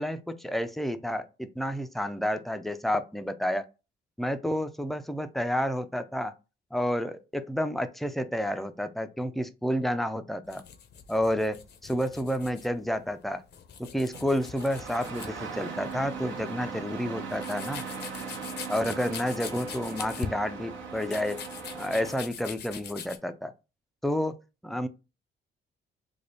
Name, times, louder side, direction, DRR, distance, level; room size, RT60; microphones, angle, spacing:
voice 1, 0.0-3.6 4.2-6.3 6.7-10.6 11.1-11.6 11.8-13.4 13.8-17.8 18.7-21.4 21.7-23.5 24.0-24.3 24.6-24.9, equal, ahead, 0.4 m, -30 dB
sound 1, 10.5-23.2, left 7 dB, 60° left, 0.6 m, -43 dB
Engine starting, 14.1-22.2, right 5 dB, 75° right, 1.0 m, -39 dB
3.4 x 2.2 x 3.9 m
cardioid pair, 90°, 20 cm